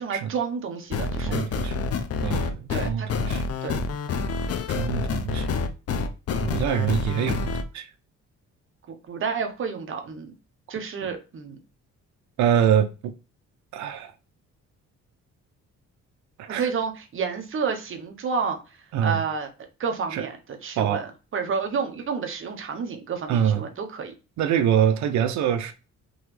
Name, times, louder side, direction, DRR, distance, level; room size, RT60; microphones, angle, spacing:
voice 1, 0.0-1.4 2.7-3.1 3.6-3.8 8.9-10.3 10.7-11.6 16.5-18.6 19.0-19.5 19.8-24.1, right 5 dB, 45° right, 0.9 m, -30 dB
sound 1, 0.9-7.6, left 4 dB, 55° left, 0.6 m, -27 dB
voice 2, 1.2-1.8 2.2-3.4 4.7-5.5 6.4-7.9 12.4-13.1 13.7-14.1 16.4-16.7 18.9-19.2 20.1-20.3 20.8-21.1 23.3-23.6 24.4-25.7, right 9 dB, 75° right, 0.5 m, -24 dB
3.8 x 2.9 x 3.1 m
cardioid pair, 125°, 29 cm